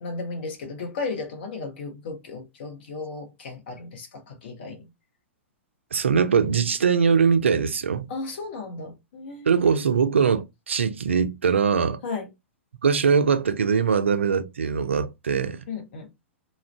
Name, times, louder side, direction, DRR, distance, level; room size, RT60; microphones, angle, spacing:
voice 1, 0.0-4.9 8.1-9.7 12.0-12.3 15.7-16.1, left 3 dB, 55° left, 0.8 m, -35 dB
voice 2, 5.9-8.1 9.5-12.0 12.8-15.6, right 6 dB, 70° right, 0.4 m, -22 dB
2.3 x 2.0 x 3.2 m
figure-of-eight pair, 105°, 7 cm